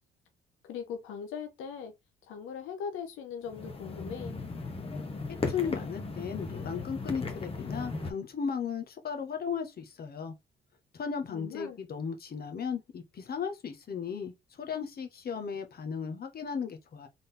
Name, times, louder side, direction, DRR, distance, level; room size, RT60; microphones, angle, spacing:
voice 1, 0.6-1.9 2.3-4.4 11.3-11.8, left 7 dB, 90° left, 0.8 m, -40 dB
sound 1, 3.5-8.1, left 3 dB, 30° left, 1.4 m, -37 dB
voice 2, 5.3-10.3 10.9-17.1, left 6 dB, 50° left, 1.5 m, -36 dB
4.0 x 3.8 x 3.5 m
cardioid pair, 90°, 20 cm